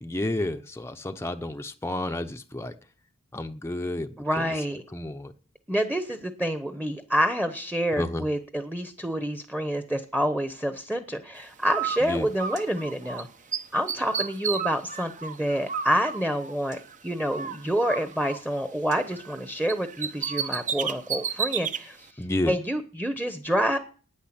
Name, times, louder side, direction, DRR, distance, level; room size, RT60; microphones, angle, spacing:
voice 1, 0.0-2.7 3.3-4.6 4.9-5.3 8.0-8.3 12.0-12.3 22.2-22.5, left 1 dB, 10° left, 6 dB, 0.7 m, -31 dB
voice 2, 4.2-4.8 5.7-13.3 13.7-22.1 22.5-23.8, equal, 5° right, 9 dB, 1.0 m, -28 dB
Bird, 11.6-13.2 13.5-17.0 17.3-19.4 19.7-21.8, right 7 dB, 35° right, 0.9 m, -32 dB
10.0 x 9.6 x 8.8 m, 0.40 s
head